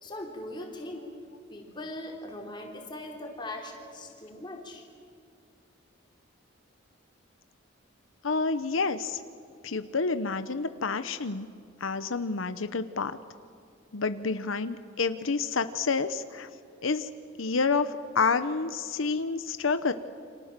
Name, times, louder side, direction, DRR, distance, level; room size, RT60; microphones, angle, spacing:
voice 1, 0.0-1.1 1.5-4.8, left 1 dB, 25° left, 1 dB, 4.0 m, -40 dB
voice 2, 8.2-9.2 9.6-11.5 11.8-13.2 13.9-16.5 16.8-17.1 17.4-19.9, left 4 dB, 85° left, 11 dB, 0.9 m, -29 dB
29.0 x 26.5 x 7.5 m, 2.5 s
head